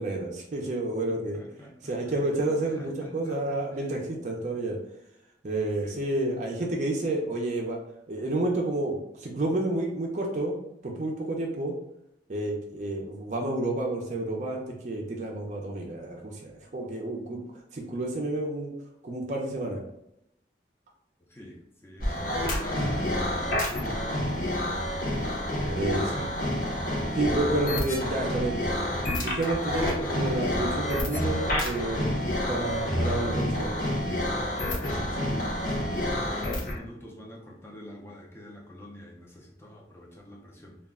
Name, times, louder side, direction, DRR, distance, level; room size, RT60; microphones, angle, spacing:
voice 1, 0.0-1.4 1.8-4.8 5.4-7.8 8.1-10.5 10.8-11.7 12.3-17.4 17.7-18.7 19.0-19.8 25.7-26.0 27.1-28.9 29.2-32.1 32.5-33.8, right 2 dB, 45° right, 0 dB, 0.5 m, -30 dB
voice 2, 1.3-3.9 5.8-5.9 21.3-24.6 25.5-26.6 34.5-40.8, left 1 dB, 15° left, -2 dB, 0.4 m, -45 dB
sound 1, 22.0-36.8, left 1 dB, 50° left, 0.7 m, -28 dB
2.3 x 2.1 x 3.5 m, 0.80 s
head